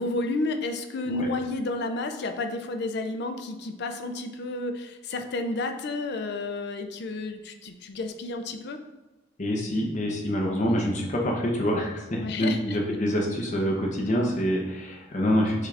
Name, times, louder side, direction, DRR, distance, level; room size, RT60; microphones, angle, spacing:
voice 1, 0.0-8.8 10.7-10.8 12.2-12.8, left 2 dB, 60° left, 6 dB, 0.4 m, -31 dB
voice 2, 9.4-15.7, equal, 40° left, -1 dB, 0.9 m, -26 dB
6.3 x 2.4 x 3.3 m, 1.1 s
head